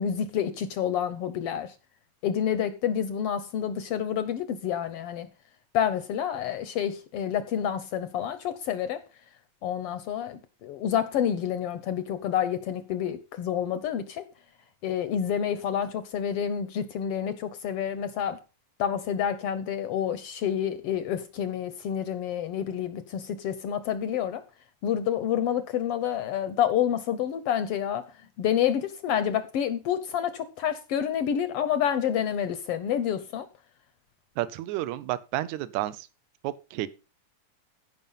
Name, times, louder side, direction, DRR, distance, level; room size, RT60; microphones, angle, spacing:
voice 1, 0.0-1.7 2.2-5.3 5.7-9.0 9.6-14.2 14.8-18.4 18.8-24.4 24.8-28.1 28.4-33.5, left 9 dB, 70° left, 1.4 m, -28 dB
voice 2, 34.4-36.1 36.4-36.9, right 15 dB, 80° right, 2.0 m, -31 dB
15.0 x 5.5 x 5.4 m
omnidirectional pair, 3.4 m